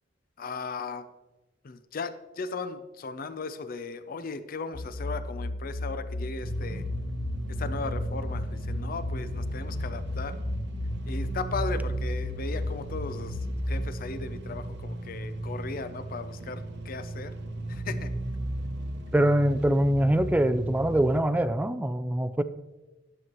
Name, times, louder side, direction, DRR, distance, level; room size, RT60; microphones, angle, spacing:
voice 1, 0.4-1.0 1.6-6.8 7.6-10.4 11.1-13.4 13.7-17.3 17.7-18.1, left 4 dB, 50° left, 12 dB, 0.5 m, -37 dB
sound 1, 4.7-13.8, left 1 dB, 85° left, 1.6 m, -34 dB
sound 2, 6.4-21.2, right 1 dB, 65° right, 0.8 m, -36 dB
voice 2, 19.1-22.4, right 1 dB, 10° right, 11 dB, 0.3 m, -23 dB
11.0 x 7.7 x 3.0 m, 1.1 s
head